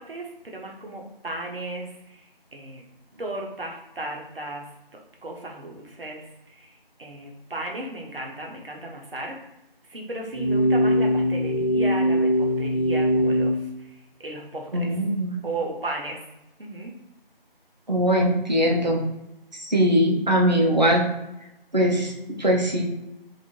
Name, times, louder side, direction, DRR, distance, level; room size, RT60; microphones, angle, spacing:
voice 1, 0.0-2.2 2.5-2.8 3.2-4.6 5.2-6.7 7.0-9.4 9.9-13.6 14.2-14.9 15.4-16.2 16.6-16.9, right 2 dB, 70° right, 0 dB, 0.8 m, -35 dB
sound 1, 10.3-13.6, equal, ahead, 0.5 m, -21 dB
voice 2, 14.7-15.4 17.9-19.0 19.5-21.1 21.7-22.1 22.4-22.9, equal, 45° right, 0 dB, 0.6 m, -21 dB
2.7 x 2.4 x 3.0 m, 0.92 s
figure-of-eight pair, 175°, 30 cm